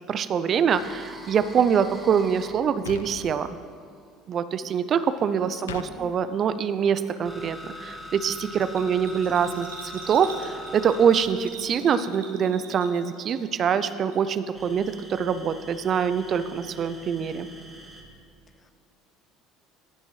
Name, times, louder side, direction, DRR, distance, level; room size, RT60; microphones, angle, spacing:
voice 1, 0.1-3.5 4.3-17.5, right 7 dB, 45° right, 12 dB, 0.3 m, -24 dB
sound 1, 0.7-4.1 5.2-12.6 14.5-18.0, left 1 dB, 5° right, 1.9 m, -43 dB
sound 2, 2.9-3.4 5.7-5.9, left 8 dB, 85° left, 0.3 m, -37 dB
voice 2, 5.4-6.1 18.5-18.7, left 5 dB, 35° left, 9 dB, 0.7 m, -45 dB
Bell, 8.6-13.6 13.9-14.7 15.0-15.1, right 5 dB, 90° right, 0.9 m, -45 dB
15.0 x 5.3 x 3.1 m, 2.3 s
hypercardioid pair, 70°, 0 cm